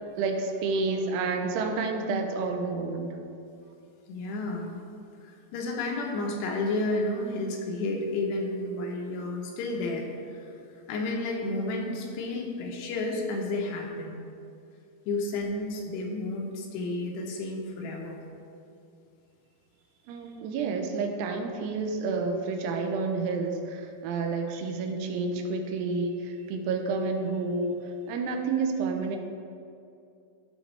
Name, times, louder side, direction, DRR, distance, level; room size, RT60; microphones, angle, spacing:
voice 1, 0.2-3.2 20.1-29.2, right 4 dB, 85° right, 4 dB, 2.7 m, -30 dB
voice 2, 4.1-4.8 5.2-10.1 10.3-14.1 15.1-18.2, left 2 dB, 85° left, 0 dB, 3.1 m, -31 dB
12.5 x 5.1 x 3.3 m, 2.5 s
omnidirectional pair, 4.8 m